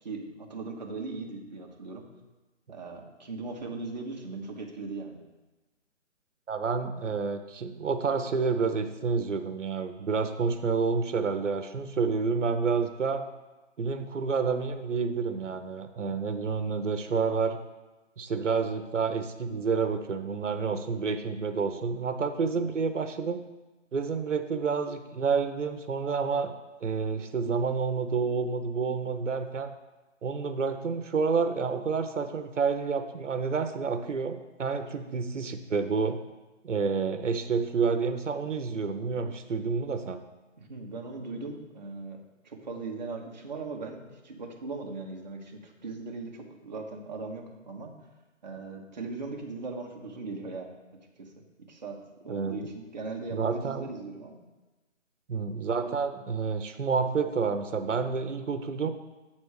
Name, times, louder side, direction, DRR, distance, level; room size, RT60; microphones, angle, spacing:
voice 1, 0.0-2.0 2.7-5.2 40.6-47.9 48.4-50.7 51.2-51.9 52.2-54.4, right 3 dB, 35° right, 0 dB, 1.0 m, -39 dB
voice 2, 6.5-13.2 13.8-17.6 18.2-23.4 23.9-26.5 26.8-29.7 30.2-36.2 36.6-40.2 52.3-52.7 53.3-53.8 55.3-58.9, right 5 dB, 75° right, 8 dB, 1.0 m, -29 dB
7.4 x 4.3 x 6.4 m, 1.1 s
hypercardioid pair, 170°, 37 cm